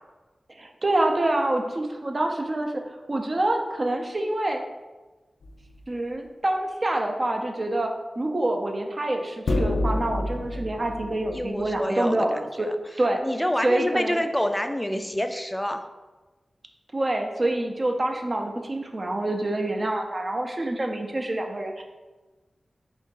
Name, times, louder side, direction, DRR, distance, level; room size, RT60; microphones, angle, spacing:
voice 1, 0.5-4.6 5.9-7.9 8.2-12.7 13.0-13.2 13.6-14.2 16.9-21.8, right 1 dB, 45° right, 3 dB, 0.5 m, -26 dB
sound 1, 5.4-5.8 9.5-11.8, left 1 dB, 90° left, 0.3 m, -28 dB
voice 2, 11.3-12.7 13.2-15.8, left 1 dB, 10° left, 7 dB, 0.4 m, -27 dB
3.7 x 2.6 x 3.7 m, 1.2 s
cardioid pair, 45°, 0 cm